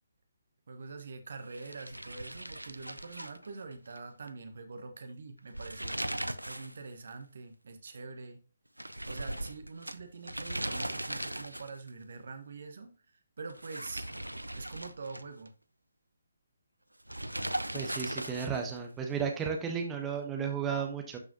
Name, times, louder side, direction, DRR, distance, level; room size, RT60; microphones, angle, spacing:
voice 1, 0.7-6.0 6.4-8.4 9.0-14.0 14.5-15.5, right 4 dB, 55° right, 6 dB, 1.3 m, -45 dB
sound 1, 1.5-4.0 4.3-4.4 5.4-6.8 7.1-7.2 8.8-11.9 13.5-15.5 17.1-18.8, right 1 dB, 85° right, 0.5 m, -38 dB
voice 2, 17.7-21.2, right 6 dB, 10° right, 2 dB, 1.0 m, -34 dB
12.0 x 4.8 x 2.9 m, 0.37 s
figure-of-eight pair, 140°, 0 cm